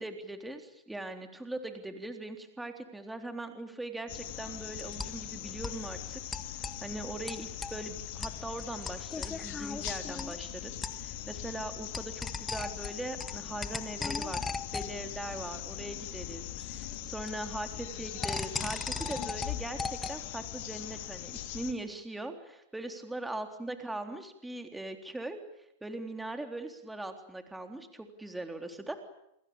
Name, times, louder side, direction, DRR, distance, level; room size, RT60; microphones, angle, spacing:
voice 1, 0.0-6.2 6.5-14.4 14.7-25.4 25.8-28.9, right 2 dB, 5° right, 6 dB, 3.6 m, -40 dB
sound 1, 4.1-21.7, left 14 dB, 60° left, 2.9 m, -41 dB
sound 2, 4.1-20.3, left 4 dB, 15° left, 1.7 m, -40 dB
28.5 x 21.5 x 8.9 m, 0.78 s
hypercardioid pair, 120°, 0 cm